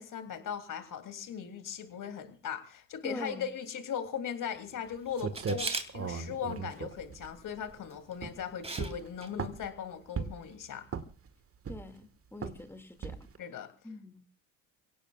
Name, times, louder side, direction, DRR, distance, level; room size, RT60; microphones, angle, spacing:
voice 1, 0.0-10.8 13.4-13.7, left 8 dB, 45° left, 9 dB, 2.8 m, -38 dB
voice 2, 3.0-3.5 11.7-13.2 13.8-14.3, left 1 dB, 5° left, 7 dB, 2.3 m, -43 dB
sound 1, 4.9-5.0 5.2-7.8 8.2-8.4 8.8-9.7 10.2-10.5 10.9-11.3 11.6-12.0 12.4-12.6 13.0-13.4, right 6 dB, 30° right, 1.6 m, -37 dB
Camera, 5.3-5.9 7.9-8.1 8.6-8.9 9.2-9.3, right 3 dB, 15° right, 2.7 m, -36 dB
29.0 x 17.0 x 2.4 m, 0.36 s
hypercardioid pair, 65°, 43 cm